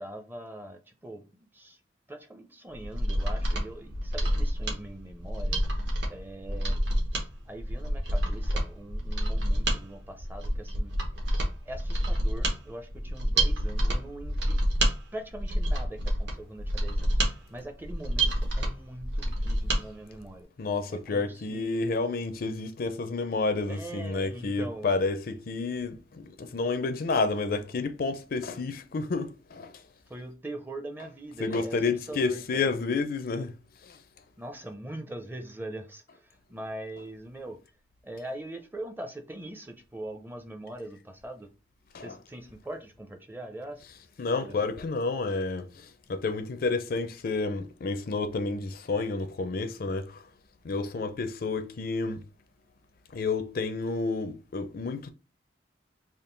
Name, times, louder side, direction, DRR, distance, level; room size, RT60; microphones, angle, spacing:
voice 1, 0.0-1.8 2.1-5.6 6.1-6.8 7.5-10.9 11.7-14.6 15.1-17.2 17.5-20.5 20.9-21.9 23.7-25.0 30.1-31.8 32.1-32.7 34.4-37.6 38.0-41.5 42.0-43.8 44.4-44.7, right 1 dB, 10° right, 0.5 m, -42 dB
Mechanisms, 2.7-19.8 20.2-20.3, right 1 dB, 65° right, 1.1 m, -28 dB
voice 2, 20.6-29.7 31.4-33.6 33.8-34.0 41.9-42.2 44.2-50.2 50.6-52.2 53.1-55.1, left 3 dB, 50° left, 0.4 m, -30 dB
3.6 x 2.4 x 3.8 m
head